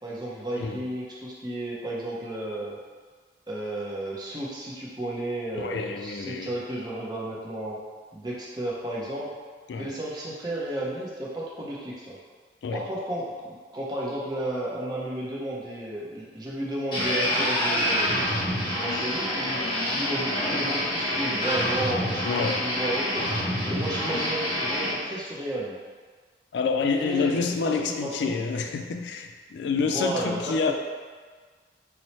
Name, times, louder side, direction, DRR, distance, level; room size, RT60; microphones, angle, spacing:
voice 1, 0.0-2.8 3.5-7.8 8.1-9.3 9.8-12.2 12.7-18.3 18.7-19.6 19.9-23.3 23.6-25.7 26.9-28.5 29.8-30.7, right 1 dB, 25° right, -5 dB, 0.6 m, -33 dB
voice 2, 5.5-6.5 9.7-9.9 12.6-12.8 22.2-22.6 26.5-30.7, left 4 dB, 75° left, 5 dB, 0.3 m, -28 dB
sound 1, 16.9-24.9, left 1 dB, 25° left, 1.1 m, -27 dB
3.0 x 2.0 x 4.1 m, 1.5 s
head